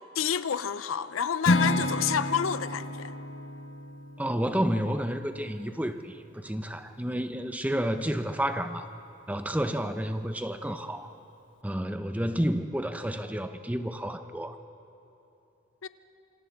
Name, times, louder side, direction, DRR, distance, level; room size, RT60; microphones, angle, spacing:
voice 1, 0.2-3.1 15.8-15.9, left 8 dB, 85° left, 0.6 m, -29 dB
Acoustic guitar / Strum, 1.4-5.5, left 1 dB, 65° left, 1.2 m, -30 dB
voice 2, 4.2-8.9 9.3-11.1 11.6-14.6, equal, 5° right, 0.7 m, -30 dB
27.0 x 26.5 x 3.6 m
head